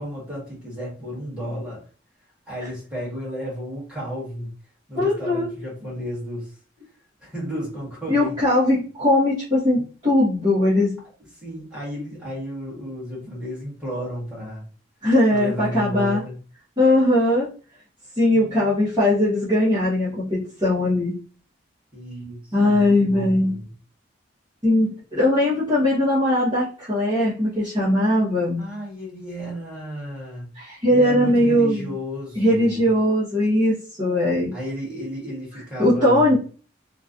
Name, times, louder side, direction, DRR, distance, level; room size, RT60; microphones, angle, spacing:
voice 1, 0.0-1.8 2.5-4.5 4.9-6.6 7.2-8.4 11.4-14.6 15.3-16.4 18.3-18.8 21.9-23.7 28.6-30.5 30.9-32.9 34.5-36.4, equal, 5° right, -7 dB, 1.5 m, -33 dB
voice 2, 5.0-5.5 8.1-11.0 15.0-16.2 16.8-17.5 18.2-21.1 22.5-23.6 24.6-28.6 30.6-31.9 32.3-34.5 35.8-36.4, left 1 dB, 20° right, -12 dB, 1.1 m, -20 dB
3.1 x 2.3 x 2.5 m, 0.38 s
head